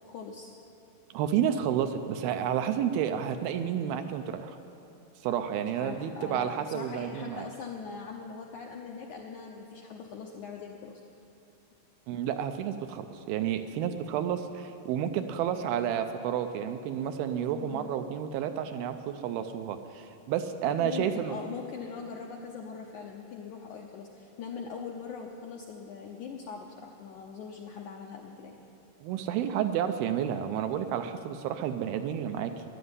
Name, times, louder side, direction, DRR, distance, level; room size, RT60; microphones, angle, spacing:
voice 1, 0.0-0.5 5.8-11.0 17.5-17.9 20.8-28.6, left 5 dB, 75° left, 0 dB, 1.8 m, -41 dB
voice 2, 1.1-4.6 5.2-7.5 12.1-21.4 29.0-32.5, right 9 dB, 80° right, 8 dB, 2.4 m, -30 dB
13.5 x 11.0 x 9.7 m, 2.8 s
omnidirectional pair, 4.6 m